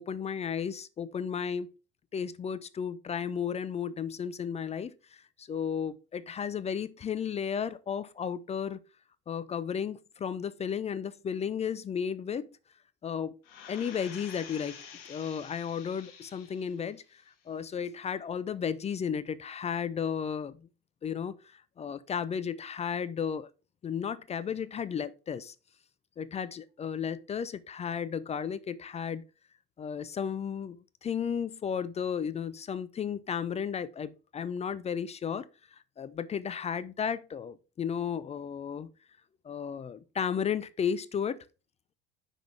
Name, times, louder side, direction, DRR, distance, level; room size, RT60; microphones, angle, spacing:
voice 1, 0.0-1.7 2.1-8.8 9.3-12.5 13.0-13.4 13.7-14.8 15.1-20.7 21.0-23.5 23.8-25.5 26.2-29.2 29.8-38.9 39.4-41.4, left 7 dB, 20° left, 0.4 m, -34 dB
sound 1, 13.4-16.8 17.3-17.4, left 7 dB, 70° left, 1.3 m, -48 dB
5.8 x 4.9 x 3.6 m
hypercardioid pair, 75°, 30 cm